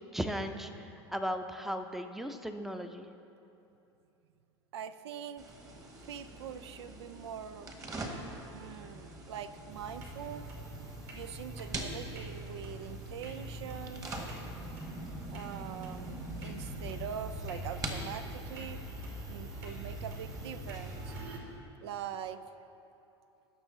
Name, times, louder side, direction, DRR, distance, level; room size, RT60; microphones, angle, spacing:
voice 1, 0.0-3.1, equal, ahead, 7 dB, 0.6 m, -37 dB
voice 2, 4.7-5.5 6.0-7.7 8.3-10.5 11.1-14.1 15.3-18.8 19.3-21.5 21.8-22.4, right 9 dB, 75° right, 12 dB, 0.4 m, -43 dB
sound 1, 5.4-21.2, right 2 dB, 25° right, 1.5 m, -45 dB
sound 2, 9.7-21.4, equal, 50° right, 2.5 m, -44 dB
16.0 x 6.2 x 4.0 m, 2.8 s
hypercardioid pair, 85°, 14 cm